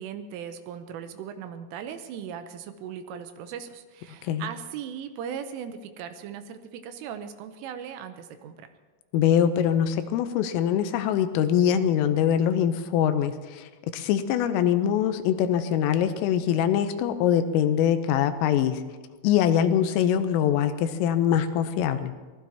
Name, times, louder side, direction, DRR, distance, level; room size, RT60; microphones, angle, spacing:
voice 1, 0.0-8.7, right 8 dB, 80° right, 8 dB, 3.3 m, -38 dB
voice 2, 9.1-18.8 19.2-22.1, left 9 dB, 90° left, 9 dB, 3.4 m, -23 dB
24.5 x 19.0 x 2.9 m, 1.3 s
omnidirectional pair, 5.8 m